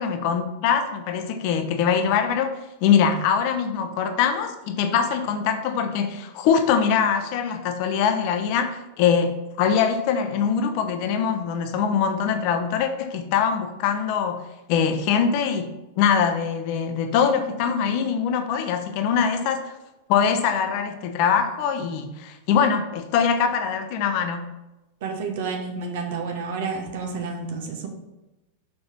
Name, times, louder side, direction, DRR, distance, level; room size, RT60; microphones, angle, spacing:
voice 1, 0.0-14.4 14.7-19.7 20.1-24.5, left 7 dB, 45° left, 7 dB, 0.9 m, -23 dB
voice 2, 25.0-27.9, right 4 dB, 55° right, 3 dB, 1.3 m, -30 dB
6.1 x 4.9 x 5.9 m, 1.0 s
figure-of-eight pair, 90°, 0 cm